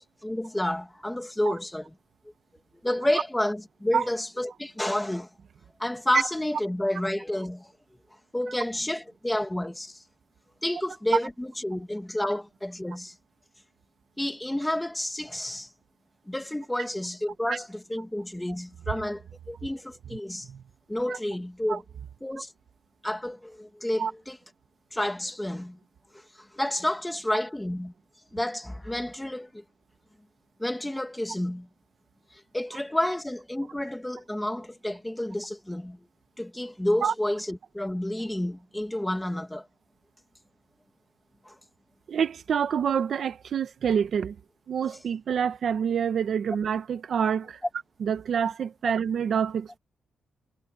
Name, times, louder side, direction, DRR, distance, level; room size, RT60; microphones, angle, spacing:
voice 1, 0.0-1.9 2.8-5.3 5.8-7.7 8.3-10.0 10.6-13.1 14.2-15.7 16.3-20.5 20.9-21.8 22.2-22.5 23.0-24.4 24.9-25.8 26.4-27.9 28.3-29.6 30.6-31.7 32.5-36.0 36.4-39.7 41.5-41.6, left 1 dB, 5° left, 1.9 m, -30 dB
voice 2, 42.1-44.3 44.7-47.6 48.0-49.8, right 7 dB, 50° right, 1.1 m, -27 dB
wide cardioid pair, 170°, 0 cm